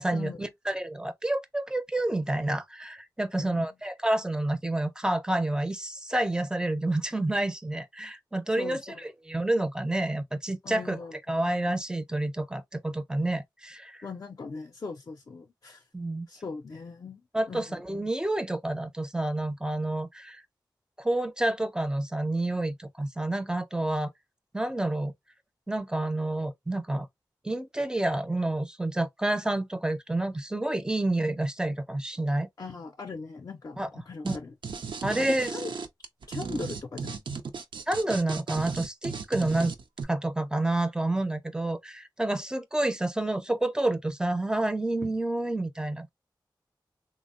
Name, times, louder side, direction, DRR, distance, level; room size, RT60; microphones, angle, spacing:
voice 1, 0.0-8.8 9.3-11.0 11.3-14.0 15.9-16.3 17.3-20.4 21.0-24.1 24.5-25.1 25.7-27.1 27.4-32.5 33.8-33.9 34.2-34.4 35.0-35.5 37.9-39.7 40.1-46.1, right 1 dB, 10° right, 0.4 m, -29 dB
voice 2, 3.3-3.7 8.6-9.1 10.6-11.2 14.0-15.9 16.3-17.8 32.6-34.5 35.2-35.7 36.3-37.2, left 4 dB, 50° left, 0.4 m, -40 dB
sound 1, 34.3-34.4 34.6-40.0, right 5 dB, 85° right, 0.4 m, -35 dB
3.4 x 2.0 x 2.4 m
wide cardioid pair, 95°, 8 cm